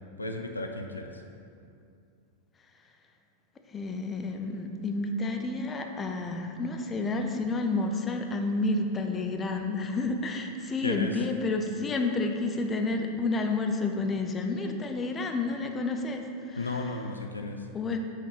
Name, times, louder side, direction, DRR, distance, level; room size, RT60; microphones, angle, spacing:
voice 1, 0.2-1.1 10.8-11.1 16.6-17.6, left 2 dB, 80° left, 4 dB, 0.5 m, -34 dB
voice 2, 3.7-16.9 17.4-18.0, left 3 dB, 20° left, 4 dB, 0.5 m, -30 dB
6.1 x 4.3 x 5.0 m, 2.4 s
figure-of-eight pair, 90°, 0 cm